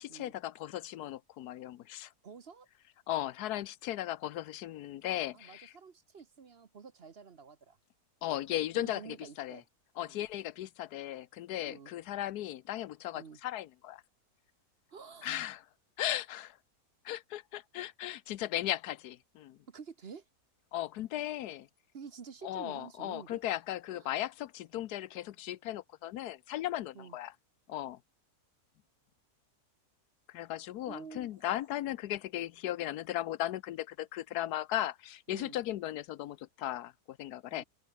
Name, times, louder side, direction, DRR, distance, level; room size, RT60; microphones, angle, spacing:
voice 1, 0.0-2.1 3.1-5.7 8.2-9.6 10.0-14.0 15.2-15.6 16.0-16.6 17.0-19.6 20.7-21.7 22.4-27.3 27.7-28.0 30.3-37.6, left 13 dB, 90° left, 1.2 m, -37 dB
voice 2, 2.2-2.7 5.3-7.8 8.7-9.6 10.0-10.3 11.6-11.9 13.1-13.4 14.9-15.4 19.7-20.2 21.9-23.4 23.9-24.2 26.9-27.2 30.9-31.4 35.3-35.6 37.5-37.6, right 6 dB, 45° right, 1.2 m, -49 dB
open air
omnidirectional pair, 1.6 m